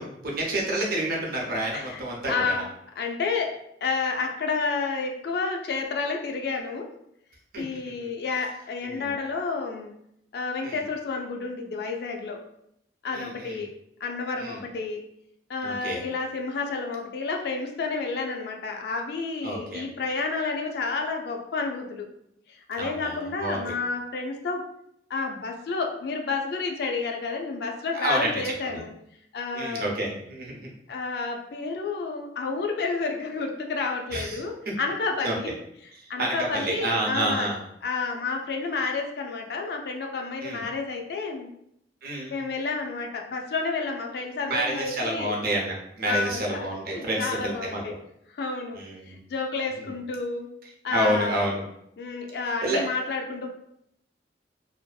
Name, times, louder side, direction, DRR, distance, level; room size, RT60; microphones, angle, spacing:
voice 1, 0.0-2.5 7.5-7.6 8.0-8.1 8.9-9.1 10.6-10.8 13.1-13.6 14.4-14.6 15.6-16.0 19.4-19.8 22.8-23.7 27.9-28.8 29.5-30.7 34.1-34.4 35.2-35.3 36.0-37.6 40.4-40.6 42.0-42.3 44.5-47.8 48.7-49.2 50.9-51.6 52.6-52.9, right 1 dB, 55° right, -1 dB, 0.6 m, -29 dB
voice 2, 2.3-2.7 3.0-6.9 7.6-9.9 10.3-12.4 13.0-13.7 14.0-15.0 15.5-22.1 22.5-24.7 25.1-28.9 29.3-29.9 30.9-35.5 36.1-37.5 37.8-41.5 42.3-45.4 46.0-47.9 48.3-50.5 50.8-51.4 52.0-53.5, left 4 dB, 60° left, 2 dB, 0.4 m, -30 dB
2.5 x 2.4 x 2.2 m, 0.76 s
head